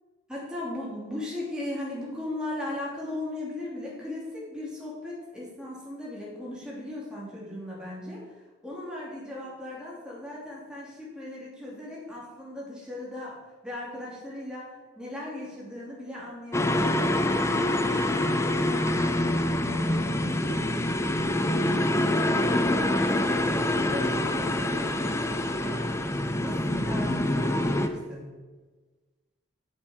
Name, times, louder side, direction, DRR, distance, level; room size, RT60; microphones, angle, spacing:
voice 1, 0.3-8.3 8.6-21.0 21.3-22.1 22.4-25.9 26.3-28.3, left 1 dB, 5° right, -6 dB, 2.9 m, -38 dB
sound 1, 16.5-27.9, left 1 dB, 15° left, 0.5 m, -26 dB
9.3 x 7.0 x 5.2 m, 1.3 s
head